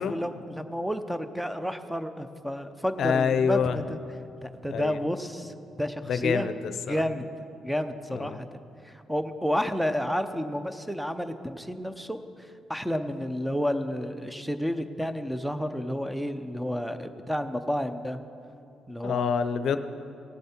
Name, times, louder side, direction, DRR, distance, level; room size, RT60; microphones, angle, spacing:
voice 1, 0.0-4.0 4.4-6.5 6.9-7.3 7.6-12.2 12.7-18.2 18.9-19.3, equal, ahead, 9 dB, 0.7 m, -31 dB
voice 2, 3.0-3.8 4.7-5.0 6.1-7.0 8.1-8.4 19.0-19.8, left 7 dB, 65° left, 11 dB, 0.6 m, -26 dB
18.0 x 7.6 x 4.4 m, 2.7 s
cardioid pair, 90°, 0 cm